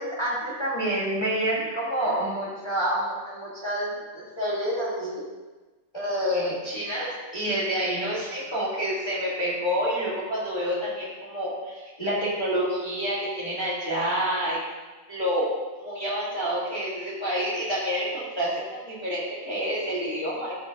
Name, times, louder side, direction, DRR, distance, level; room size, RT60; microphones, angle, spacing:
voice 1, 0.0-5.2 5.9-14.6 15.1-15.5 15.7-20.5, equal, 20° left, -8 dB, 1.5 m, -28 dB
12.0 x 5.1 x 2.8 m, 1.2 s
omnidirectional pair, 1.5 m